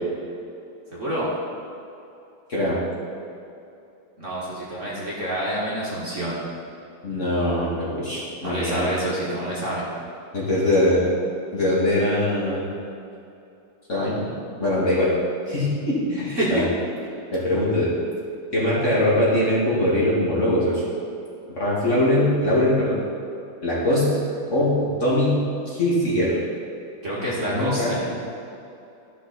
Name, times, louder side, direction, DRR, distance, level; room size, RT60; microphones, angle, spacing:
voice 1, 0.9-1.3 4.2-6.4 8.4-9.8 15.9-16.7 27.0-28.0, right 1 dB, 40° right, -7 dB, 1.9 m, -27 dB
voice 2, 7.0-8.8 10.3-11.0 11.5-12.6 13.9-14.3 14.6-15.1 15.5-16.6 17.3-17.9 18.5-20.8 21.5-23.0 23.6-24.2 24.5-25.4 25.7-26.4 27.5-27.9, left 1 dB, 35° left, -8 dB, 2.4 m, -22 dB
13.0 x 6.1 x 4.2 m, 2.7 s
omnidirectional pair, 2.2 m